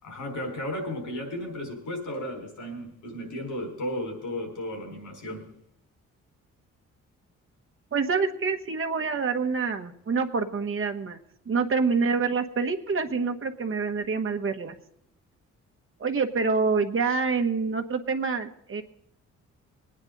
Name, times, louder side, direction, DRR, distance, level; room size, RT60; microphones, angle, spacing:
voice 1, 0.0-5.5, left 1 dB, 85° left, 1 dB, 4.8 m, -34 dB
voice 2, 7.9-11.2 11.5-14.8 16.0-18.8, right 4 dB, 45° right, 6 dB, 1.2 m, -26 dB
21.0 x 9.7 x 3.9 m, 0.74 s
cardioid pair, 85°, 30 cm